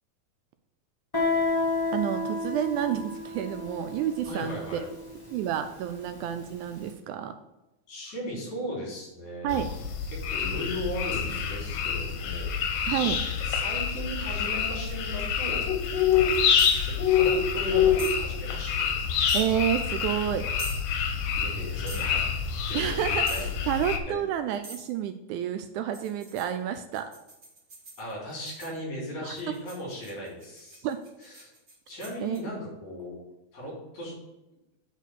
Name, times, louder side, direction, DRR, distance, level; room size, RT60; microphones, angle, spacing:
Guitar, 1.1-6.6, left 2 dB, 20° left, 0.6 m, -31 dB
voice 1, 1.9-4.9 5.3-7.3 9.4-9.7 12.9-13.2 19.3-20.5 22.7-27.1 29.2-29.4 30.8-31.0 32.2-32.5, right 10 dB, 80° right, 9 dB, 1.9 m, -30 dB
voice 2, 4.2-4.8 7.9-9.6 10.1-12.9 13.4-15.7 16.1-18.9 21.4-23.5 24.1-24.2 28.0-30.9 31.2-31.5 31.9-33.2 33.5-34.1, left 1 dB, 65° left, -3 dB, 4.5 m, -37 dB
sound 1, 9.5-24.0, left 7 dB, 85° left, 2.5 m, -27 dB
sound 2, 16.6-16.9 18.0-18.2 19.3-19.5 20.6-20.8 21.9-22.1 23.3-23.5 24.6-24.9 25.9-28.8 29.4-32.4, right 3 dB, 35° right, 1.7 m, -43 dB
8.3 x 4.0 x 6.5 m, 0.97 s
omnidirectional pair, 3.7 m